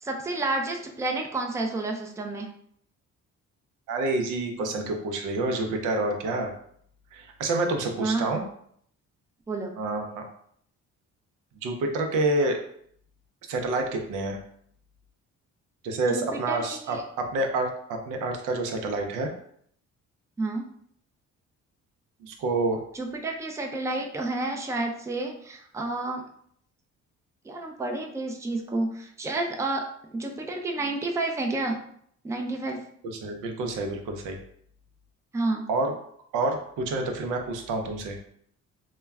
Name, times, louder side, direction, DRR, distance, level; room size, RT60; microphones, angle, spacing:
voice 1, 0.0-2.5 8.0-8.3 9.5-9.7 16.1-17.0 20.4-20.7 22.9-26.2 27.4-29.8 30.1-31.8 32.2-32.8 35.3-35.7, right 2 dB, 10° right, 2 dB, 0.4 m, -30 dB
voice 2, 3.9-6.5 7.1-8.4 9.8-10.2 11.6-12.6 13.5-14.4 15.8-19.3 22.2-22.8 33.0-34.4 35.7-35.9 36.3-38.2, right 2 dB, 90° right, 3 dB, 0.5 m, -28 dB
2.2 x 2.1 x 3.4 m, 0.66 s
cardioid pair, 90°, 30 cm